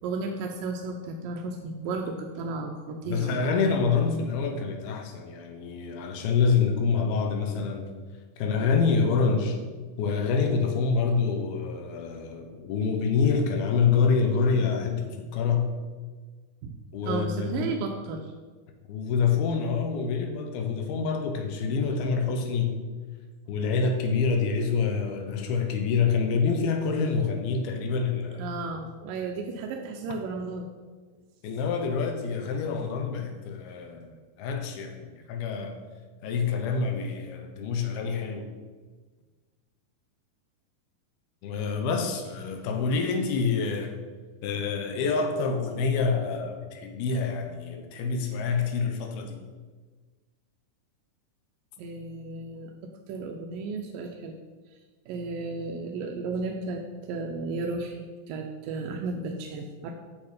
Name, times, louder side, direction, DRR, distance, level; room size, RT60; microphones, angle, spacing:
voice 1, 0.0-3.4 16.6-16.8 17.0-18.3 28.4-30.7 51.8-54.4 55.1-59.9, right 3 dB, 80° right, 2 dB, 2.2 m, -34 dB
voice 2, 3.0-7.9 8.4-9.6 10.0-15.7 16.9-17.7 18.9-22.7 23.5-28.4 31.4-34.1 34.4-35.8 36.2-38.5 41.4-43.9 44.4-49.4, left 5 dB, 90° left, 5 dB, 2.8 m, -26 dB
8.6 x 6.6 x 4.9 m, 1.4 s
omnidirectional pair, 4.3 m